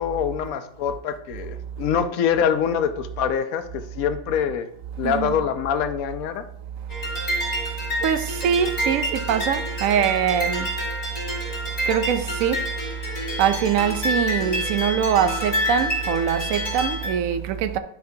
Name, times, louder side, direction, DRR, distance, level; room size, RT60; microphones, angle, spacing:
voice 1, 0.0-4.7 5.0-6.4, left 8 dB, 90° left, 1.1 m, -24 dB
voice 2, 5.0-5.3 8.0-10.7 11.5-11.6 11.8-12.7 13.1-17.8, right 8 dB, 75° right, 0.9 m, -23 dB
sound 1, 6.9-17.1, equal, 35° left, 2.4 m, -28 dB
11.5 x 4.7 x 2.7 m
omnidirectional pair, 1.4 m